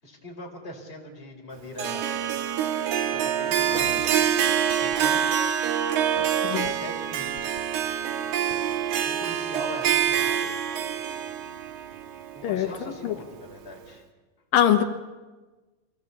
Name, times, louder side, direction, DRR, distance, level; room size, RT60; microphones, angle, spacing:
voice 1, 0.0-2.1 3.1-5.7 6.6-7.4 9.0-10.5 12.3-14.1, left 1 dB, 15° left, -1 dB, 4.2 m, -41 dB
Harp, 1.8-13.0, right 9 dB, 65° right, 2.6 m, -26 dB
sound 1, 3.7-5.1 6.2-6.7 7.3-7.6 8.5-8.8, left 7 dB, 60° left, 1.4 m, -43 dB
voice 2, 14.5-14.8, left 11 dB, 85° left, 6 dB, 2.9 m, -21 dB
25.0 x 17.0 x 8.3 m, 1.2 s
omnidirectional pair, 3.9 m